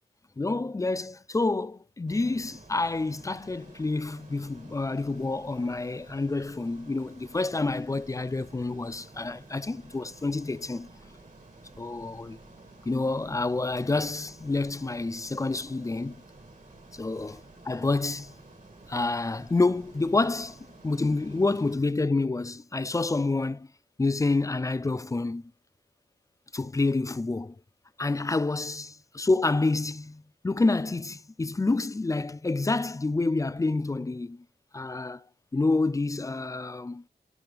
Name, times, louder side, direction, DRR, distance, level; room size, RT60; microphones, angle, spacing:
voice 1, 0.4-10.9 11.8-12.4 12.9-16.2 16.9-17.4 17.6-18.3 18.9-20.6 20.8-23.7 24.0-25.5 26.5-27.5 28.0-34.4 34.7-35.2 35.5-37.0, left 3 dB, 20° left, 0.3 m, -28 dB
Ocean, 2.1-21.7, right 2 dB, 50° right, 2.5 m, -52 dB
12.0 x 5.4 x 3.3 m
wide cardioid pair, 100°, 17 cm